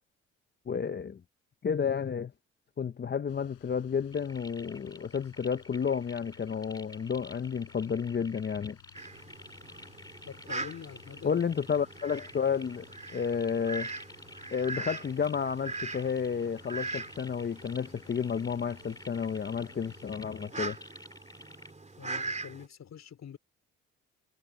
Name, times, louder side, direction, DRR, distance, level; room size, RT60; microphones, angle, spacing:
voice 1, 0.7-1.2 1.6-2.3 2.8-8.8 11.2-13.9 14.5-20.8, left 6 dB, 35° left, 0.8 m, -31 dB
sound 1, 3.3-20.2, left 18 dB, 85° left, 4.8 m, -59 dB
sound 2, 4.1-21.7, left 2 dB, 10° left, 2.8 m, -51 dB
Fowl, 8.9-22.7, right 3 dB, 20° right, 3.9 m, -42 dB
voice 2, 10.3-11.4 22.0-23.4, left 8 dB, 55° left, 3.7 m, -45 dB
supercardioid pair, 65°, 31 cm